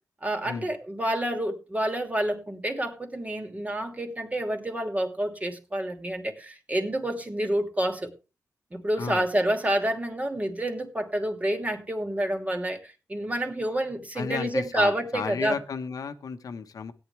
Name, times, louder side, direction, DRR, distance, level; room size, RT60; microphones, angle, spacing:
voice 1, 0.2-8.1 8.7-15.6, right 1 dB, 25° right, 2.9 m, -28 dB
voice 2, 9.0-9.3 14.1-16.9, left 5 dB, 70° left, 1.3 m, -33 dB
17.0 x 10.0 x 3.5 m
cardioid pair, 80°, 6 cm